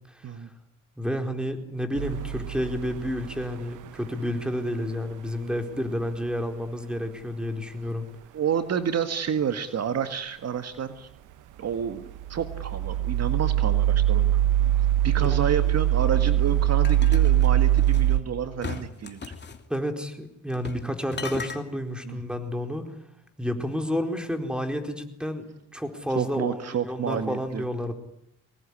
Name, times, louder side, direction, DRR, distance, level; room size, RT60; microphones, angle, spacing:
voice 1, 1.0-8.1 19.7-22.9 23.4-25.4 25.7-27.9, equal, 5° right, 5 dB, 4.4 m, -30 dB
sound 1, 2.0-3.5 12.1-18.2, right 12 dB, 90° right, 1.1 m, -22 dB
voice 2, 8.3-11.1 11.6-14.4 15.0-19.3 22.0-22.2 26.1-27.6, right 8 dB, 55° right, 9 dB, 1.8 m, -29 dB
sound 2, 16.8-18.1 18.6-19.6 20.5-20.9 21.1-21.6, left 5 dB, 35° left, 2.9 m, -37 dB
24.5 x 19.5 x 10.0 m, 0.77 s
cardioid pair, 90°, 30 cm